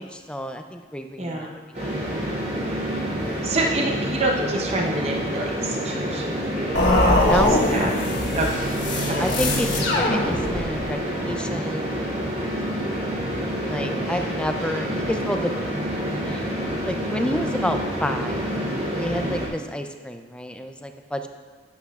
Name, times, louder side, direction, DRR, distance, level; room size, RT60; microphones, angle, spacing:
voice 1, 0.0-1.5 7.2-7.6 9.2-12.7 13.7-15.5 16.2-16.6 16.8-18.6 18.9-21.3, equal, 5° left, 6 dB, 0.4 m, -29 dB
voice 2, 1.2-1.5 3.4-7.3 7.7-7.9 8.4-8.7 9.1-9.4, right 2 dB, 35° right, 0 dB, 0.8 m, -27 dB
sound 1, 1.7-19.5, equal, 50° right, 2.7 m, -28 dB
sound 2, 6.7-10.9, left 1 dB, 65° left, 1.5 m, -22 dB
11.5 x 10.5 x 2.4 m, 1.4 s
head